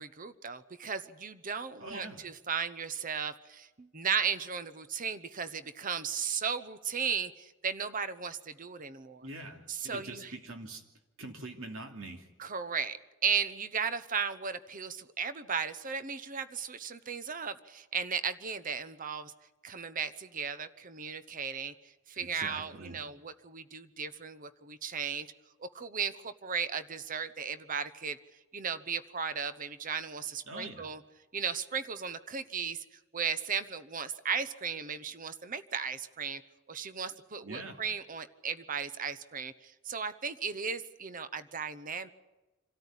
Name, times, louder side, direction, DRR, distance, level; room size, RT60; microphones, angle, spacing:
voice 1, 0.0-9.3 9.7-10.3 12.4-19.3 19.6-21.7 22.1-25.3 25.6-28.2 28.5-31.0 31.3-32.8 33.1-36.4 36.7-42.1, right 6 dB, 40° right, 13 dB, 0.9 m, -35 dB
voice 2, 1.8-2.2 9.2-10.8 11.2-12.3 22.2-23.0 30.5-30.9 37.4-37.8, right 2 dB, 65° right, 4 dB, 2.9 m, -44 dB
26.5 x 13.5 x 10.0 m, 1.1 s
head